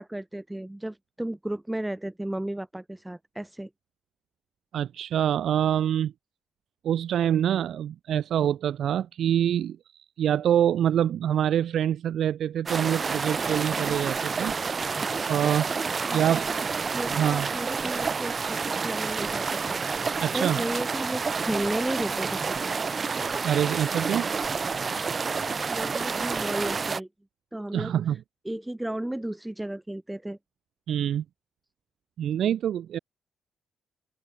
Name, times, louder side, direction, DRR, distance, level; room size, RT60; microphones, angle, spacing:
voice 1, 0.0-3.7 16.0-16.7 16.9-19.8 20.3-22.7 25.7-27.1 27.5-27.9 28.4-30.4, right 1 dB, 10° right, 6.2 m, -34 dB
voice 2, 4.7-6.1 6.8-9.8 10.2-14.5 15.3-15.7 16.1-16.5 17.1-17.5 20.2-20.6 23.4-24.3 27.7-28.2 30.9-31.2 32.2-33.0, right 10 dB, 70° right, 2.9 m, -25 dB
sound 1, 12.7-27.0, right 5 dB, 40° right, 1.4 m, -29 dB
cardioid pair, 75°, 0 cm